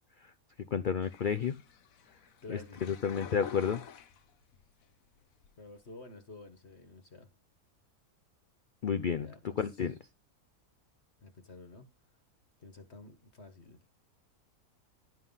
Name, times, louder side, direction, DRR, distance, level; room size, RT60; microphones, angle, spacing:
voice 1, 0.7-1.6 2.5-3.8 8.8-9.3 9.6-9.9, left 7 dB, 85° left, 0.4 m, -31 dB
sound 1, 1.0-4.7 5.1-5.8, left 8 dB, 65° left, 1.3 m, -48 dB
voice 2, 2.4-3.0 5.6-7.3 9.2-9.6 11.2-11.9 12.6-13.8, left 3 dB, 45° left, 1.6 m, -50 dB
11.0 x 5.7 x 5.5 m
omnidirectional pair, 1.6 m